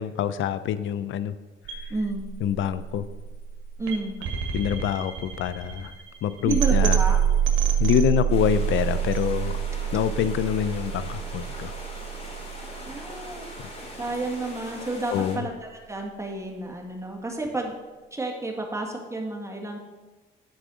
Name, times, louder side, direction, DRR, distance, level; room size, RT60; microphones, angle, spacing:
voice 1, 0.0-1.4 1.8-1.9 2.4-3.1 4.5-5.9 6.2-7.0 7.8-9.6 9.9-11.7 13.6-13.7 15.1-15.5, left 10 dB, 75° left, 13 dB, 0.6 m, -26 dB
sound 1, 1.6-13.7, right 9 dB, 70° right, 1.6 m, -27 dB
voice 2, 1.9-2.2 3.8-4.1 6.4-7.2 12.9-13.5 14.0-17.8 18.1-19.8, right 2 dB, 15° right, 0 dB, 1.8 m, -31 dB
sound 2, 8.3-15.4, left 1 dB, 35° left, 3.1 m, -41 dB
10.5 x 4.8 x 6.2 m, 1.2 s
cardioid pair, 90°, 20 cm